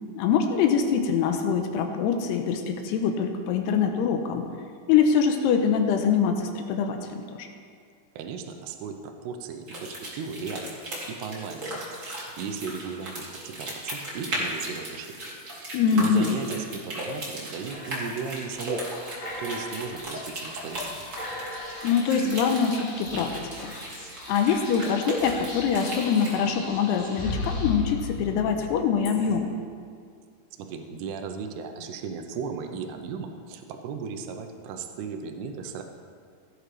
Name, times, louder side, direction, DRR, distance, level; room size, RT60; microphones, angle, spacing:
voice 1, 0.1-4.5 4.9-7.5 15.7-16.4 21.8-23.4 23.6-23.7 24.3-29.5, left 6 dB, 80° left, 5 dB, 2.6 m, -24 dB
voice 2, 8.2-10.8 11.1-11.8 12.1-18.9 19.2-21.0 30.6-35.8, right 5 dB, 80° right, 5 dB, 2.7 m, -36 dB
sound 1, 9.7-26.4, right 1 dB, 40° right, 1.1 m, -36 dB
sound 2, 17.7-18.7 19.2-20.4 20.8-20.9 21.2-23.9 25.2-25.9 26.3-29.4, left 3 dB, 60° left, 4.8 m, -37 dB
Speech / Whispering, 18.6-28.3, left 1 dB, 45° left, 3.3 m, -44 dB
16.0 x 10.0 x 3.3 m, 2.2 s
omnidirectional pair, 5.0 m